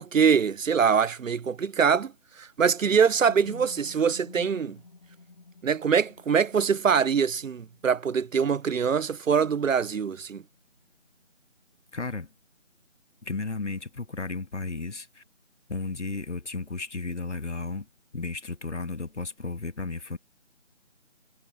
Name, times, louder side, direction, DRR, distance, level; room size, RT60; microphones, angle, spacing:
voice 1, 0.0-2.1 2.4-4.8 5.6-10.4, right 6 dB, 85° right, 0.6 m, -24 dB
sound 1, 2.6-10.6, left 3 dB, 40° left, 5.0 m, -53 dB
voice 2, 11.9-12.3 13.2-15.2 15.7-17.9 18.1-20.2, left 3 dB, 65° left, 1.7 m, -34 dB
figure-of-eight pair, 165°, 38 cm